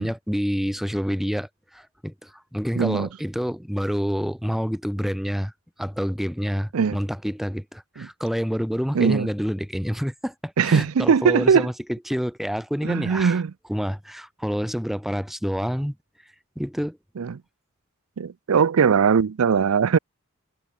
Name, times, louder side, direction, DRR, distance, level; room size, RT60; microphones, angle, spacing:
voice 1, 0.0-1.5 1.7-5.5 5.8-13.4 13.7-15.9 16.6-17.0, equal, ahead, 2.5 m, -28 dB
voice 2, 2.8-3.1 6.7-7.0 8.0-8.1 8.9-9.3 10.6-11.7 12.8-13.5 17.2-17.4 18.2-20.0, right 6 dB, 75° right, 0.5 m, -20 dB
head